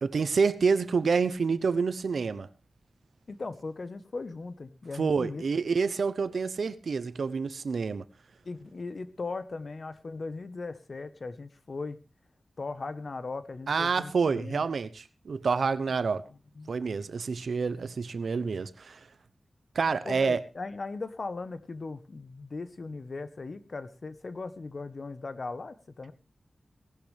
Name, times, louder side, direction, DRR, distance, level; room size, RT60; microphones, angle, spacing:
voice 1, 0.0-2.5 5.0-8.0 13.7-16.2 16.7-19.0 19.7-20.4, right 5 dB, 80° right, 0.9 m, -28 dB
voice 2, 3.3-5.4 8.4-12.0 12.6-14.7 16.6-16.7 20.0-26.1, left 3 dB, 60° left, 1.2 m, -38 dB
18.5 x 12.0 x 3.5 m
cardioid pair, 60°, 0 cm